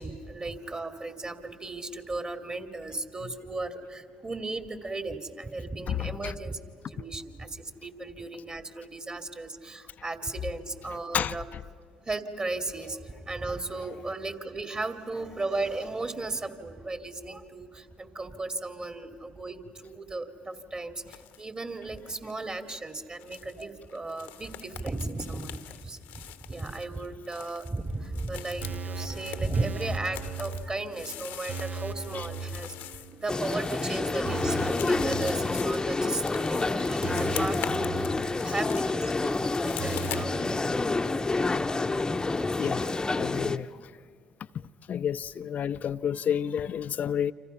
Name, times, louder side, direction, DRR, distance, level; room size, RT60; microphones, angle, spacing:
voice 1, 0.0-6.6 6.9-11.4 12.0-41.5 42.5-42.9, right 2 dB, 30° right, 2.6 m, -36 dB
voice 2, 5.9-6.3 11.1-11.4 32.1-32.2 42.6-43.9 44.9-47.3, left 8 dB, 55° left, 0.7 m, -30 dB
sound 1, 21.0-21.5 21.8-40.6, left 12 dB, 75° left, 1.1 m, -44 dB
sound 2, 27.9-33.4 33.7-33.8 34.3-36.2 36.5-36.6 37.0-39.0 39.2-39.3 39.8-40.4, right 4 dB, 45° right, 1.1 m, -38 dB
sound 3, 33.3-43.6, left 3 dB, 20° left, 1.0 m, -28 dB
29.0 x 26.5 x 5.7 m
hypercardioid pair, 55°, 3 cm